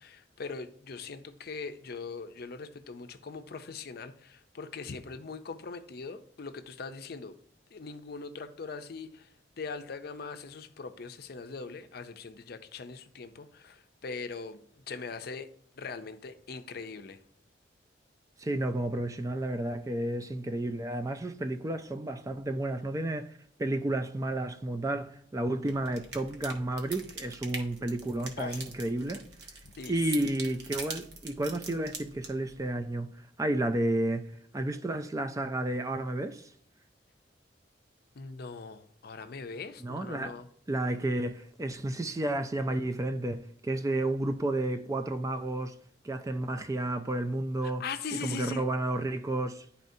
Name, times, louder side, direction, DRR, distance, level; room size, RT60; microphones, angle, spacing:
voice 1, 0.0-7.4 7.7-15.5 15.8-17.2 28.4-28.6 29.8-30.3 38.1-40.5 47.6-48.6, left 4 dB, 60° left, 0.5 m, -41 dB
voice 2, 18.4-29.3 29.9-33.1 33.4-36.5 39.8-40.3 40.7-45.8 46.0-47.8 48.2-49.7, right 1 dB, 20° right, 0.4 m, -31 dB
sound 1, 25.7-32.7, right 4 dB, 65° right, 1.2 m, -44 dB
10.5 x 4.2 x 2.7 m
head